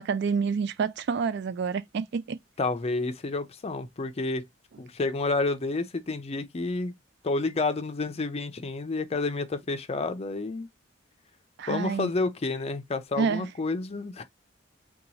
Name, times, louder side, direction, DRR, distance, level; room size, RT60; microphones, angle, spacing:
voice 1, 0.0-2.4 11.6-12.1 13.2-13.5, right 5 dB, 60° right, 0.4 m, -28 dB
voice 2, 2.6-4.5 4.8-6.9 7.2-10.7 11.7-14.2, left 3 dB, 35° left, 0.5 m, -29 dB
2.9 x 2.3 x 3.9 m
head